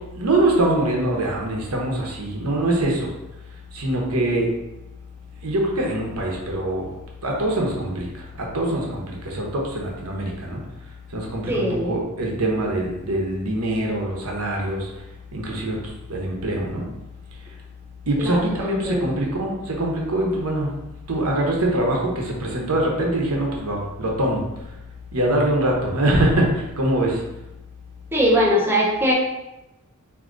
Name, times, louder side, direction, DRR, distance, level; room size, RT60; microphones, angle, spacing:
voice 1, 0.1-3.1 3.7-4.5 5.4-6.9 7.2-10.6 11.1-14.9 15.3-15.8 16.1-16.8 18.1-20.7 21.1-24.4 25.1-27.2, right 1 dB, 85° right, -1 dB, 0.9 m, -23 dB
voice 2, 11.5-12.0 18.2-19.2 28.1-29.1, equal, 10° right, -3 dB, 0.6 m, -21 dB
3.8 x 2.8 x 3.7 m, 0.96 s
head